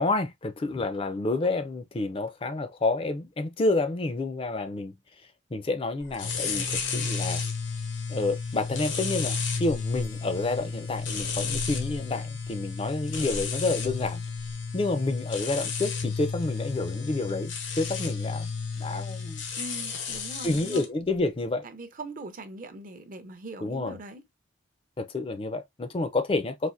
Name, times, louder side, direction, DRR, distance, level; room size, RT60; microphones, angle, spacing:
voice 1, 0.0-4.9 5.5-7.4 8.1-14.2 14.7-18.5 18.8-19.4 20.4-21.6 23.6-24.0 25.0-26.7, left 2 dB, 30° left, 0.4 m, -29 dB
sound 1, 6.1-20.8, left 5 dB, 80° left, 0.9 m, -32 dB
voice 2, 19.6-20.9 21.6-24.2, right 2 dB, 45° right, 0.5 m, -41 dB
4.1 x 2.5 x 2.4 m
head